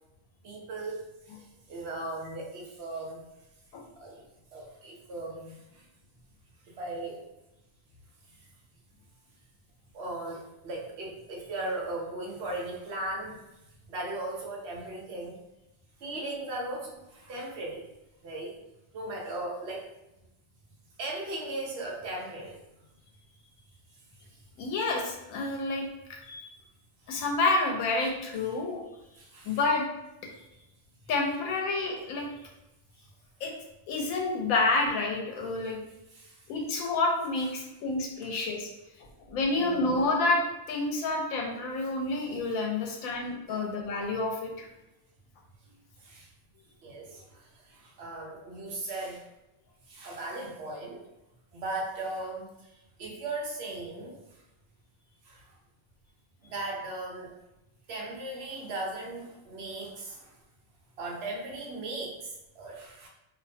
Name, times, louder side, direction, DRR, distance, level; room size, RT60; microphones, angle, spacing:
voice 1, 0.4-3.2 4.0-4.2 4.5-5.8 6.7-7.2 9.9-13.4 13.9-15.4 16.0-17.9 18.2-18.5 18.9-19.9 21.0-22.6 29.2-29.6 36.1-36.4 38.2-38.3 39.5-39.9 43.5-43.7 46.0-46.3 46.8-49.3 49.9-51.0 51.5-52.7 53.0-54.4 55.2-55.5 56.4-57.4 57.9-60.3 61.0-63.1, right 2 dB, 65° right, -2 dB, 0.7 m, -38 dB
voice 2, 24.6-26.5 27.1-28.8 29.4-29.8 31.1-32.3 33.4-33.5 33.9-35.8 36.5-38.7 39.3-40.4 40.7-44.7, left 3 dB, 90° left, 1 dB, 1.0 m, -29 dB
2.6 x 2.0 x 2.6 m, 0.94 s
omnidirectional pair, 1.4 m